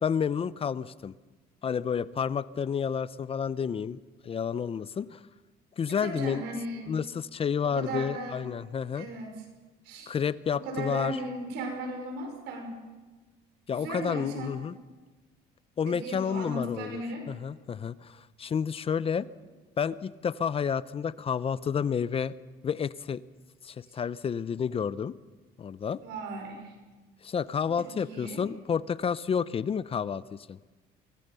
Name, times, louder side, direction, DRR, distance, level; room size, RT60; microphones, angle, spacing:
voice 1, 0.0-1.1 1.6-4.0 4.2-5.2 5.8-6.4 6.9-9.1 10.1-11.2 13.7-14.7 15.8-19.3 19.8-22.3 22.6-23.2 23.6-25.1 25.6-26.0 27.2-30.6, left 7 dB, 35° left, 18 dB, 0.6 m, -30 dB
voice 2, 5.9-6.9 7.6-8.4 8.9-9.3 9.8-10.1 10.5-12.8 13.7-14.7 15.9-17.3 23.9-24.0 26.0-26.7 27.7-28.4, right 2 dB, 85° right, 3 dB, 5.7 m, -37 dB
24.5 x 18.0 x 6.9 m, 1.3 s
cardioid pair, 110°, 17 cm